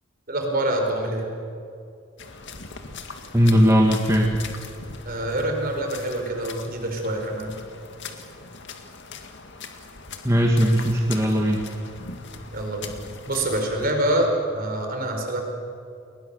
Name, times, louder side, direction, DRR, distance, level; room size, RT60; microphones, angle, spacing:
voice 1, 0.3-1.3 5.0-7.6 12.5-12.9 13.3-15.4, right 1 dB, 45° right, 2 dB, 4.8 m, -26 dB
sound 1, 2.2-13.9, left 4 dB, 55° left, 2.1 m, -40 dB
voice 2, 3.3-4.3 10.2-11.6, equal, 15° right, 0 dB, 1.7 m, -18 dB
30.0 x 21.5 x 7.0 m, 2.5 s
head